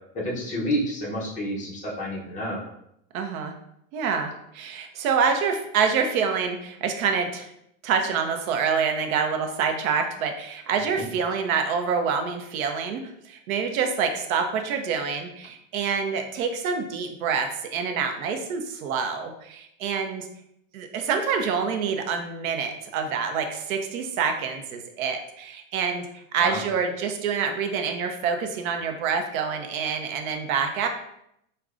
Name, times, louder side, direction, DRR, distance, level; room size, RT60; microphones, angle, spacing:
voice 1, 0.1-2.6 26.4-26.6, equal, 20° left, -3 dB, 0.7 m, -29 dB
voice 2, 3.1-3.5 3.9-7.5 7.8-20.3 20.7-30.9, right 6 dB, 90° right, 5 dB, 0.6 m, -26 dB
4.9 x 2.2 x 2.4 m, 0.77 s
supercardioid pair, 145°, 41 cm